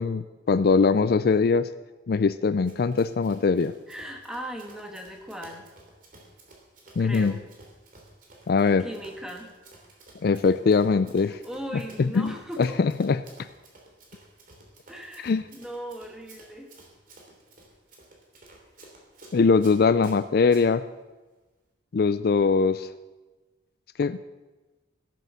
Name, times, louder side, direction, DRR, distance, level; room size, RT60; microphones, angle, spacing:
voice 1, 0.0-1.7 2.1-3.7 7.0-7.3 8.5-8.9 10.2-11.4 12.0-12.3 12.6-13.2 15.2-15.4 19.3-20.9 21.9-22.9 24.0-24.2, left 4 dB, 55° left, 14 dB, 0.4 m, -22 dB
Run, 2.7-20.7, right 2 dB, 50° right, 3.1 m, -52 dB
voice 2, 3.9-5.7 7.0-7.4 8.8-9.5 11.2-12.8 14.9-16.7, equal, 5° right, 3 dB, 1.6 m, -38 dB
16.5 x 7.6 x 7.0 m, 1.2 s
head